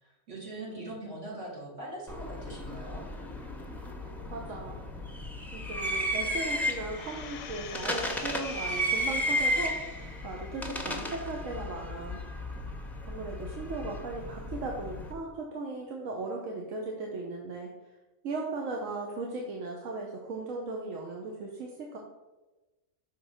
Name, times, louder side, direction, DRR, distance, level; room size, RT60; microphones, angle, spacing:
voice 1, 0.0-3.0, right 1 dB, 65° right, -5 dB, 2.4 m, -41 dB
sound 1, 2.1-15.1, equal, ahead, 0.4 m, -34 dB
voice 2, 4.3-4.8 5.5-12.2 13.1-17.7 18.2-22.0, right 3 dB, 85° right, 0 dB, 1.2 m, -37 dB
sound 2, 6.9-10.3 10.7-10.8, left 9 dB, 90° left, 1.0 m, -46 dB
6.0 x 3.7 x 5.6 m, 1.1 s
omnidirectional pair, 1.3 m